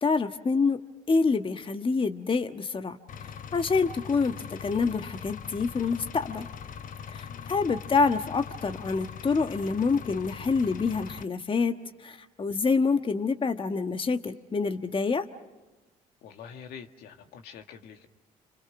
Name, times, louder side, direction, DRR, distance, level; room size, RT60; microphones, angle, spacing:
voice 1, 0.0-0.8 1.1-3.0 3.5-6.5 7.1-15.3, left 4 dB, 30° left, 7 dB, 1.4 m, -27 dB
Engine, 3.1-11.2, left 7 dB, 55° left, 0.9 m, -41 dB
voice 2, 7.3-7.6 16.2-18.1, left 7 dB, 75° left, 5 dB, 1.9 m, -46 dB
29.5 x 26.5 x 6.1 m, 1.2 s
hypercardioid pair, 60°, 17 cm